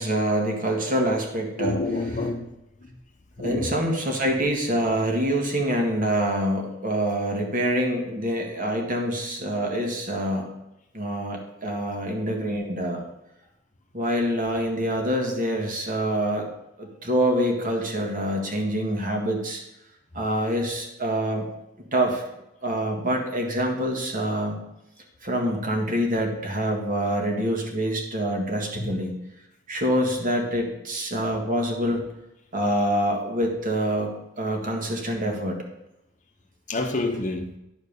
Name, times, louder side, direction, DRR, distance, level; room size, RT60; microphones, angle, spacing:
voice 1, 0.0-1.8 3.4-10.5 10.9-13.0 13.9-16.5 16.8-19.6 20.1-21.5 21.9-22.2 22.6-24.6 25.2-29.2 29.7-32.0 32.5-35.7, equal, 45° right, 2 dB, 1.9 m, -26 dB
voice 2, 1.6-2.5 2.8-2.9 3.4-3.8 28.7-28.9 36.7-37.5, left 2 dB, 40° left, 6 dB, 0.9 m, -28 dB
10.5 x 4.5 x 6.8 m, 0.87 s
head